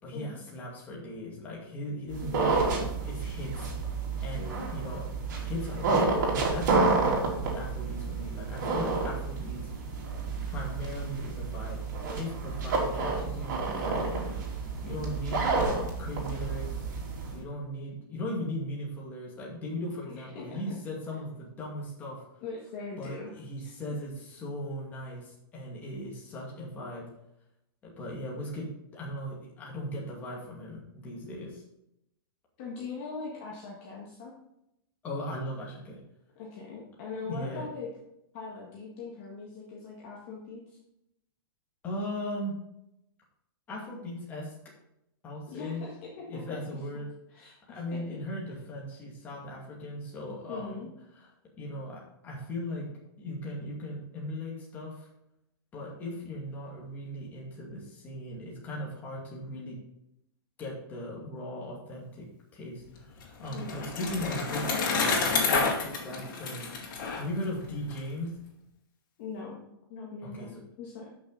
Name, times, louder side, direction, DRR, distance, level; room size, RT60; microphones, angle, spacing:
voice 1, 0.0-3.7 4.2-5.1 5.4-9.6 10.5-11.8 12.1-14.4 14.8-16.8 17.3-22.2 23.0-27.0 27.8-31.6 35.0-36.0 37.2-37.7 41.8-42.5 43.7-44.5 45.2-45.8 46.3-47.1 47.4-50.8 51.6-52.9 53.2-55.1 55.7-59.8 60.6-62.3 62.5-66.7 67.1-68.3 70.2-70.5, left 1 dB, 15° left, -3 dB, 2.3 m, -38 dB
sound 1, 2.1-17.4, right 3 dB, 50° right, 3.1 m, -30 dB
voice 2, 2.2-2.8 4.3-4.7 14.9-15.2 20.1-20.7 22.4-23.3 32.6-34.3 36.3-37.9 38.3-40.8 45.5-46.4 47.3-48.0 50.5-50.9 63.5-63.8 69.2-69.6 69.9-71.1, left 4 dB, 30° left, -3 dB, 1.7 m, -41 dB
Bicycle, 62.9-68.0, left 4 dB, 55° left, 2.9 m, -29 dB
12.0 x 6.2 x 4.0 m, 0.83 s
supercardioid pair, 175°, 12 cm